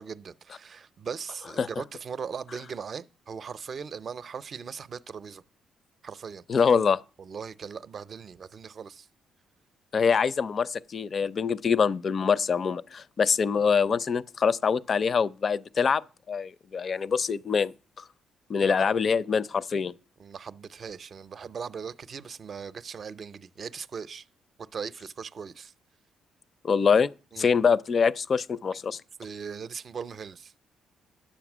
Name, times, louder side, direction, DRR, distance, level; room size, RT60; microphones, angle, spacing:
voice 1, 0.0-5.4 6.0-6.4 7.2-9.1 18.6-18.9 20.2-24.3 24.7-25.7 27.3-27.5 29.2-30.5, right 6 dB, 45° right, 0.5 m, -39 dB
voice 2, 6.5-7.0 9.9-16.0 16.3-17.7 18.5-19.9 26.6-29.0, left 6 dB, 45° left, 0.4 m, -24 dB
10.0 x 7.2 x 6.0 m
cardioid pair, 90°, 0 cm